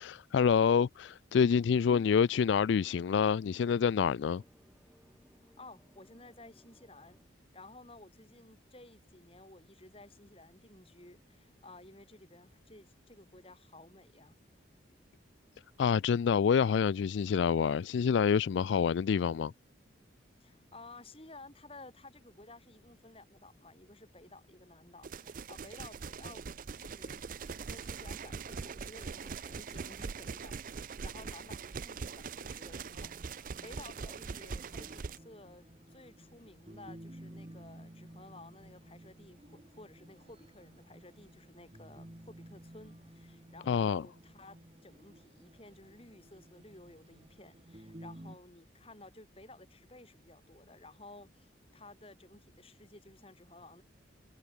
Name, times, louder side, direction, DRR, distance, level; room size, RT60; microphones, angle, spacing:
voice 1, 0.0-4.4 15.8-19.5 43.7-44.0, left 6 dB, 70° left, 0.3 m, -27 dB
voice 2, 1.8-2.3 5.6-7.2 7.5-14.4 20.4-26.4 26.8-53.8, left 2 dB, 30° left, 5.9 m, -54 dB
sound 1, 2.2-7.3, equal, ahead, 7.9 m, -64 dB
sound 2, 25.0-35.2, right 5 dB, 45° right, 0.5 m, -42 dB
sound 3, 32.9-48.4, right 1 dB, 30° right, 1.4 m, -54 dB
head